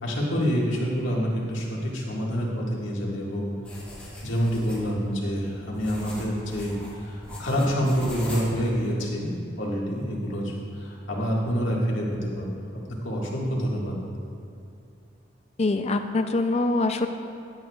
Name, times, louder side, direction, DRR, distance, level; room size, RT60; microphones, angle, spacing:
voice 1, 0.0-3.5 4.2-9.3 9.6-12.5 12.9-13.9, equal, 80° left, -3 dB, 1.8 m, -27 dB
sound 1, 3.6-8.9, left 1 dB, 5° left, 2.1 m, -40 dB
voice 2, 15.6-17.1, left 2 dB, 35° left, 7 dB, 0.4 m, -24 dB
15.5 x 8.9 x 2.4 m, 2.6 s
head